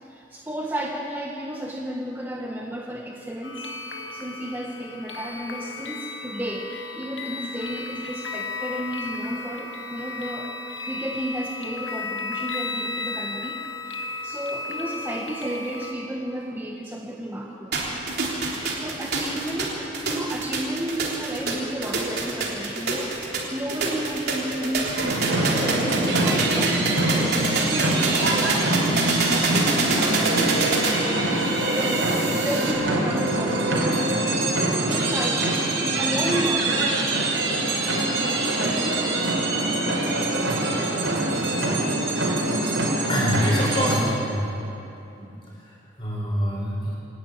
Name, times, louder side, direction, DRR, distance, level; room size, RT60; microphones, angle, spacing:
voice 1, 0.0-3.7 4.1-10.6 10.8-17.8 18.7-30.8 31.2-31.3 31.7-34.5 34.9-37.2 38.2-39.1, equal, 10° right, -1 dB, 1.3 m, -32 dB
sound 1, 3.4-15.9, left 3 dB, 75° left, 1.8 m, -34 dB
sound 2, 17.7-32.7, right 3 dB, 55° right, 3.7 m, -27 dB
sound 3, 25.0-44.0, right 2 dB, 90° right, 5.1 m, -24 dB
voice 2, 43.1-44.5 45.2-45.3 45.6-46.9, equal, 25° left, -4 dB, 6.6 m, -25 dB
27.0 x 12.0 x 9.5 m, 2.9 s
head